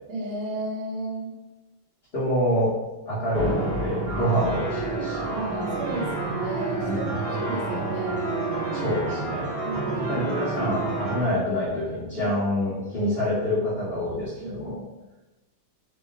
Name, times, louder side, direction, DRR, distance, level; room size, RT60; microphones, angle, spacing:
voice 1, 0.1-1.3 5.3-8.2 9.6-10.0 12.1-12.4 12.7-12.9 14.4-14.8, right 2 dB, 90° right, -1 dB, 1.6 m, -34 dB
voice 2, 2.1-2.7 3.1-5.3 6.8-7.1 8.7-9.5 10.1-14.8, left 1 dB, 40° left, -10 dB, 0.9 m, -26 dB
sound 1, 3.3-11.2, right 2 dB, 55° right, 1.2 m, -29 dB
3.7 x 2.1 x 3.4 m, 1.1 s
omnidirectional pair, 2.2 m